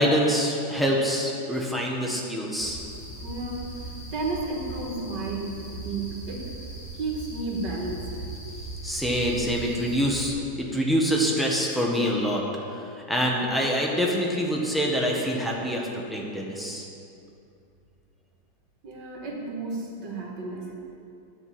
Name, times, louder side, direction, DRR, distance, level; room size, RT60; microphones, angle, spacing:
voice 1, 0.0-2.8 8.8-12.4 12.7-16.9, equal, ahead, -2 dB, 1.1 m, -25 dB
sound 1, 2.6-10.3, right 2 dB, 65° left, 3.7 m, -39 dB
voice 2, 3.2-6.6 6.9-8.1 18.8-20.7, right 3 dB, 70° right, -1 dB, 2.2 m, -33 dB
10.5 x 6.0 x 8.4 m, 2.6 s
omnidirectional pair, 2.0 m